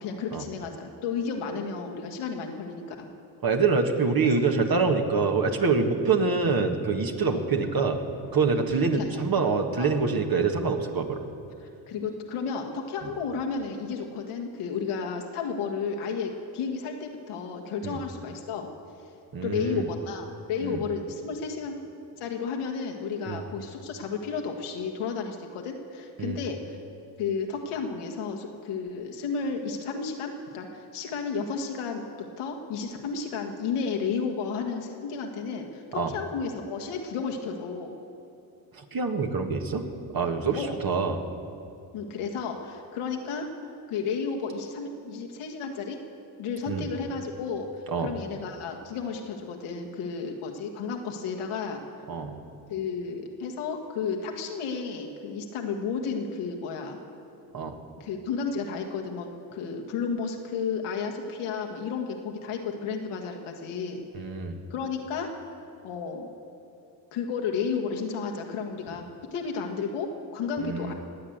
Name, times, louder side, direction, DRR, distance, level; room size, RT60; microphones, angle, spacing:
voice 1, 0.0-3.1 6.2-6.3 7.3-7.4 8.9-9.1 9.8-9.9 11.6-18.7 19.4-21.8 22.2-26.8 27.2-32.0 32.4-38.0 40.5-40.8 41.9-43.5 43.9-46.0 46.4-51.8 52.7-57.0 58.0-64.0 64.7-65.4 65.8-66.3 67.1-69.0 69.3-70.9, left 5 dB, 90° left, 2 dB, 1.7 m, -32 dB
voice 2, 3.4-8.0 8.3-11.2 17.8-18.0 19.3-19.9 20.6-20.8 23.3-23.4 26.2-26.4 36.0-36.1 38.8-39.8 40.1-41.2 46.7-46.9 47.9-48.1 52.1-52.3 57.5-57.8 64.1-64.6 70.6-70.9, right 4 dB, 45° right, 4 dB, 1.8 m, -25 dB
19.0 x 8.8 x 8.0 m, 2.6 s
supercardioid pair, 65°, 48 cm